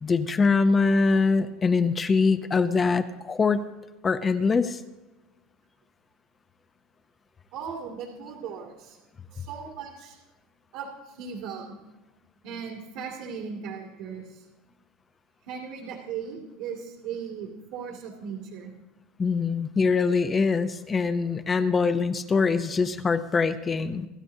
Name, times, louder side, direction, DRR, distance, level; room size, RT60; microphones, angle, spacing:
voice 1, 0.0-3.7 4.0-4.8 19.2-24.1, left 4 dB, 20° left, 9 dB, 0.6 m, -23 dB
voice 2, 7.5-9.0 9.3-10.2 10.7-11.8 12.4-14.4 15.4-18.7, right 6 dB, 65° right, 1 dB, 2.4 m, -37 dB
25.5 x 12.5 x 2.7 m, 1.1 s
supercardioid pair, 150°, 0 cm